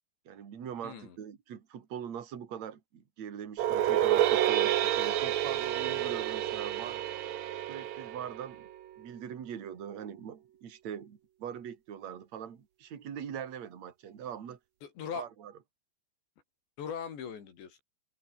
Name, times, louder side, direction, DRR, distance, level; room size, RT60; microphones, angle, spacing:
voice 1, 0.3-7.0 7.7-8.7 9.0-14.6 15.1-15.5, right 8 dB, 45° right, 3.5 m, -42 dB
voice 2, 0.8-1.2 14.8-15.3 16.8-17.8, left 7 dB, 80° left, 6.4 m, -40 dB
sound 1, 3.6-8.8, right 11 dB, 70° right, 1.7 m, -29 dB
omnidirectional pair, 5.0 m